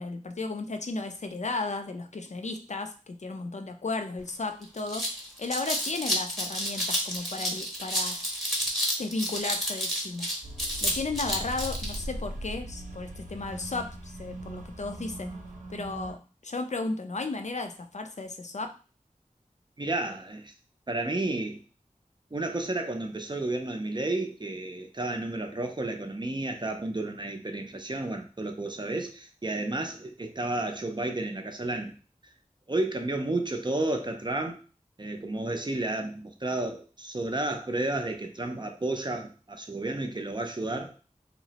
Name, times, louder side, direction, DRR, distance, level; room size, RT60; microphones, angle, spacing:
voice 1, 0.0-5.0 5.4-8.4 9.0-10.3 10.8-15.3 15.7-18.7, left 3 dB, 60° left, 6 dB, 0.4 m, -34 dB
sound 1, 4.2-4.3 4.6-12.0, equal, ahead, 0.8 m, -30 dB
sound 2, 10.4-16.1, right 1 dB, 70° right, 0.7 m, -39 dB
voice 2, 19.8-20.5 20.9-21.6 22.3-32.0 32.7-34.6 35.0-40.9, right 2 dB, 35° right, 4 dB, 0.4 m, -32 dB
2.9 x 2.0 x 2.8 m, 0.35 s
wide cardioid pair, 45°, 14 cm